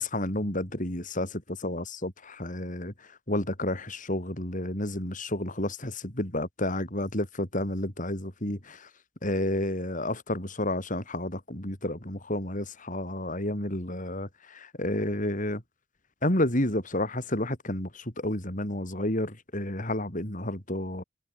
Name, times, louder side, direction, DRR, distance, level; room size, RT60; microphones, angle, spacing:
voice 1, 0.1-2.9 3.3-8.9 9.2-15.6 16.2-21.0, left 1 dB, 40° left, 4.9 m, -31 dB
head